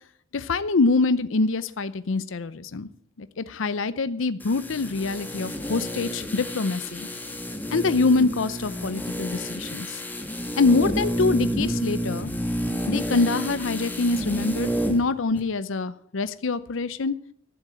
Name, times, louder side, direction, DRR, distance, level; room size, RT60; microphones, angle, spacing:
voice 1, 0.3-2.9 3.2-7.1 7.7-10.0 10.6-12.3 12.9-17.1, left 3 dB, 70° left, 14 dB, 0.6 m, -25 dB
sound 1, 4.4-15.1 15.3-15.4, equal, 10° left, 1.4 m, -30 dB
13.0 x 7.6 x 8.5 m, 0.65 s
head